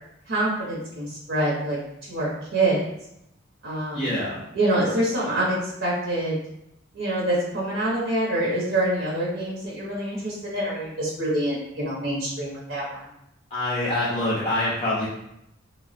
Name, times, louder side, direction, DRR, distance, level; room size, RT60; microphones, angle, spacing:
voice 1, 0.3-1.8 2.1-2.8 3.6-4.1 4.5-6.4 6.9-13.1, right 1 dB, 65° right, -5 dB, 0.8 m, -26 dB
voice 2, 3.9-4.4 13.5-15.1, left 1 dB, 30° left, -6 dB, 0.5 m, -25 dB
3.2 x 2.0 x 2.4 m, 0.80 s
head